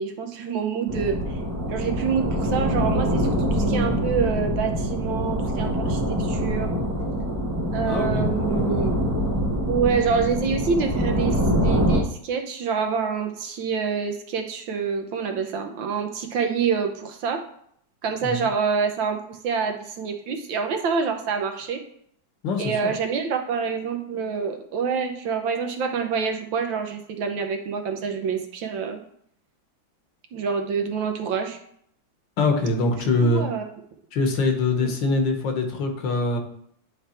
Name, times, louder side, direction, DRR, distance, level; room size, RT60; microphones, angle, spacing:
voice 1, 0.0-1.4 1.7-6.7 7.7-8.9 9.7-17.4 18.0-21.8 22.6-29.0 30.3-31.6 33.2-33.6 34.8-34.9, right 6 dB, 85° right, 5 dB, 1.6 m, -27 dB
sound 1, 0.9-12.0, equal, 25° right, 0.3 m, -24 dB
voice 2, 7.8-8.3 18.2-18.4 22.4-22.9 32.4-33.5 34.1-36.4, left 3 dB, 75° left, 4 dB, 1.8 m, -23 dB
10.0 x 3.4 x 4.3 m, 0.67 s
omnidirectional pair, 2.0 m